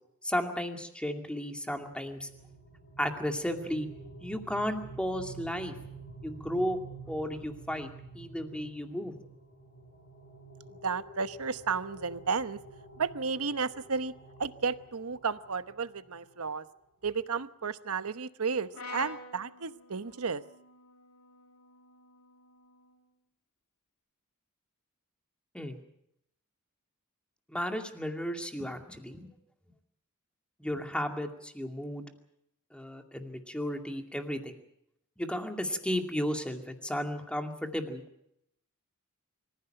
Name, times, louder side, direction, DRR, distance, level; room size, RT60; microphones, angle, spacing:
voice 1, 0.2-2.3 3.0-3.9 4.2-5.7 6.2-6.8 7.1-7.9 8.1-9.1 25.5-25.8 27.5-29.3 30.6-32.0 32.7-34.5 35.2-38.0, equal, 5° left, 4 dB, 2.3 m, -34 dB
sound 1, 1.9-16.4, right 2 dB, 55° left, 5.1 m, -49 dB
voice 2, 10.7-12.6 13.0-14.1 14.4-16.7 17.0-20.4, right 5 dB, 80° right, 13 dB, 1.0 m, -33 dB
Brass instrument, 18.7-23.0, left 3 dB, 90° left, 3.0 m, -48 dB
24.5 x 15.0 x 8.9 m, 0.78 s
head